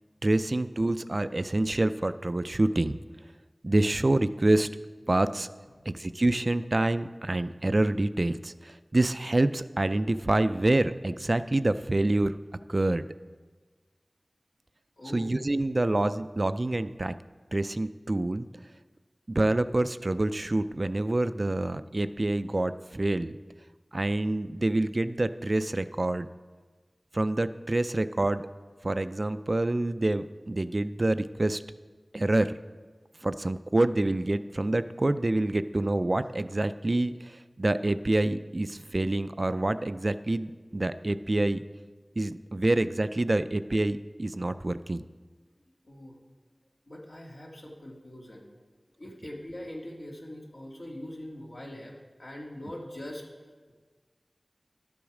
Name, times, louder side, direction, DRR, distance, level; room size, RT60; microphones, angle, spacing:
voice 1, 0.2-3.0 3.6-4.7 5.1-5.5 5.9-12.3 12.7-13.1 15.1-17.2 17.5-18.5 19.3-23.4 23.9-26.3 27.1-28.5 28.8-31.6 32.1-32.5 33.2-41.6 42.2-45.0, right 2 dB, 50° right, 12 dB, 0.3 m, -27 dB
voice 2, 15.0-15.4 45.8-46.2 46.9-48.5 49.0-53.3, left 1 dB, 70° left, -2 dB, 2.0 m, -42 dB
11.5 x 7.0 x 4.9 m, 1.4 s
wide cardioid pair, 50°, 0 cm